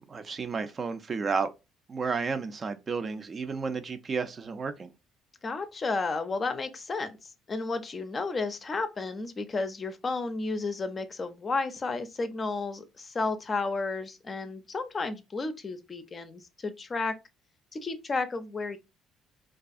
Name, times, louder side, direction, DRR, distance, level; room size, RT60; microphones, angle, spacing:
voice 1, 0.1-1.5 1.9-4.9, right 5 dB, 40° right, 0.4 m, -32 dB
voice 2, 5.4-17.2 17.7-18.8, left 3 dB, 35° left, 0.5 m, -32 dB
2.4 x 2.3 x 2.5 m
hypercardioid pair, 55°, 0 cm